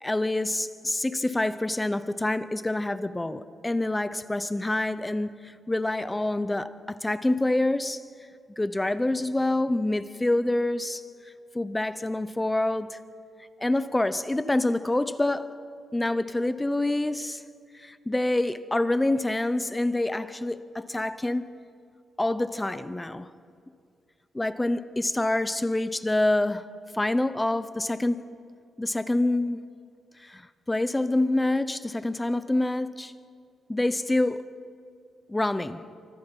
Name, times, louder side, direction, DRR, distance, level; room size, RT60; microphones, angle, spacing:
voice 1, 0.0-8.0 8.6-11.0 11.5-13.0 13.6-15.5 15.9-17.4 17.8-21.5 22.2-23.3 24.3-26.6 26.9-28.2 28.8-29.6 30.2-33.1 33.7-34.5 35.3-35.8, left 2 dB, 10° left, 0.8 m, -26 dB
28.0 x 25.0 x 5.4 m
cardioid pair, 165°, 0 cm